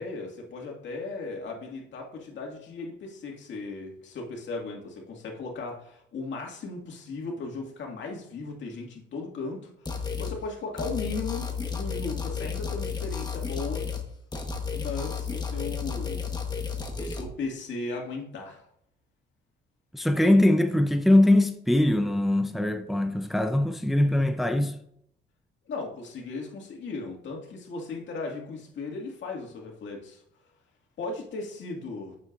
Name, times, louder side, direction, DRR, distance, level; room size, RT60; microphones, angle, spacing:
voice 1, 0.0-13.9 14.7-16.3 17.0-18.6 25.7-30.2 31.0-32.2, left 3 dB, 65° left, 2.1 m, -36 dB
sound 1, 9.9-10.4 10.8-14.1 14.3-17.2, left 6 dB, 20° left, 1.3 m, -32 dB
voice 2, 19.9-24.8, left 1 dB, ahead, 0.6 m, -22 dB
10.5 x 7.3 x 2.6 m
cardioid pair, 90°, 20 cm